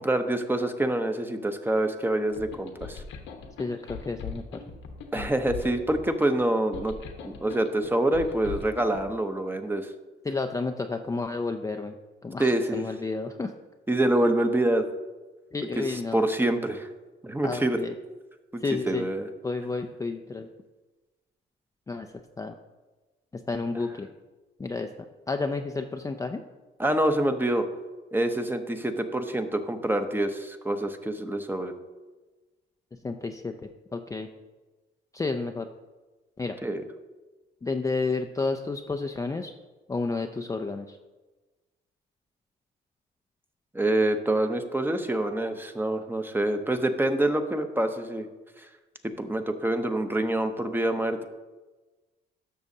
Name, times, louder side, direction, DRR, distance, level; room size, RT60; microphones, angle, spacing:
voice 1, 0.0-3.0 5.1-6.9 7.2-9.9 12.4-12.8 13.9-14.9 15.8-15.9 16.1-16.9 17.2-17.8 18.5-19.3 26.8-27.6 28.1-31.7 36.6-36.8 43.7-48.3 48.6-48.7 49.0-51.2, right 1 dB, 10° right, 7 dB, 0.8 m, -26 dB
sound 1, 2.3-9.0, left 5 dB, 85° left, 1.2 m, -40 dB
voice 2, 3.6-4.4 10.2-11.9 12.2-13.5 15.5-16.2 17.4-17.9 18.6-19.1 19.4-20.5 21.9-22.1 22.4-22.5 23.3-24.1 24.6-24.9 25.3-26.4 33.0-33.5 33.9-34.3 35.1-35.7 36.4-36.6 37.6-39.5 39.9-41.0, left 3 dB, 15° left, 4 dB, 0.4 m, -31 dB
12.0 x 6.3 x 2.7 m, 1.2 s
cardioid pair, 90°, 20 cm